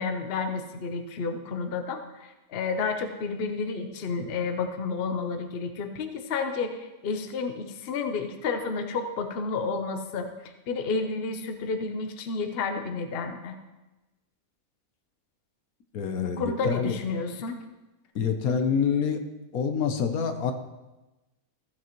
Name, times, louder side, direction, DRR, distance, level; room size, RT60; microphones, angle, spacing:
voice 1, 0.0-13.6 16.2-17.6, left 4 dB, 50° left, 6 dB, 0.9 m, -31 dB
voice 2, 15.9-16.9 18.1-19.2 19.5-20.5, left 6 dB, 75° left, 6 dB, 1.3 m, -26 dB
15.0 x 7.6 x 3.1 m, 1.1 s
omnidirectional pair, 1.5 m